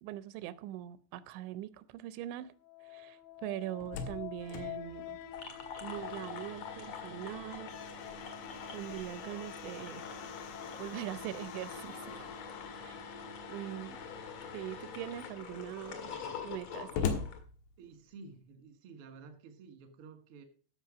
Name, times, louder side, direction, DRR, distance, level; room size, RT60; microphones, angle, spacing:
voice 1, 0.0-2.5 2.8-5.2 5.8-7.7 8.7-10.0 10.8-12.3 12.8-13.1 13.5-14.0 14.5-16.1 16.4-17.2, right 13 dB, 90° right, 16 dB, 3.1 m, -42 dB
sound 1, 2.5-15.4, left 10 dB, 75° left, 2.7 m, -49 dB
Slam, 3.5-6.3 6.7-6.8 7.2-12.8 13.7-14.3 14.8-14.9 15.1-18.3, left 6 dB, 90° left, 3.8 m, -43 dB
sound 2, 5.3-17.4, left 5 dB, 50° left, 2.2 m, -45 dB
voice 2, 17.8-20.4, right 4 dB, 65° right, 7 dB, 1.4 m, -52 dB
13.5 x 6.2 x 5.0 m, 0.41 s
omnidirectional pair, 5.1 m